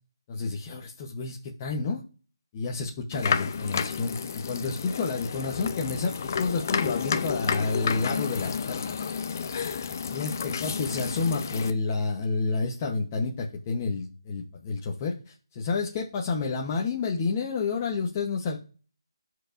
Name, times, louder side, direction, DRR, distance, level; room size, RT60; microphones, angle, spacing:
voice 1, 0.3-2.0 2.5-8.8 10.1-18.6, left 4 dB, 25° left, 0 dB, 1.0 m, -30 dB
sound 1, 3.1-11.7, left 6 dB, 40° left, 0.7 m, -31 dB
13.0 x 4.8 x 2.6 m, 0.37 s
figure-of-eight pair, 165°, 3 cm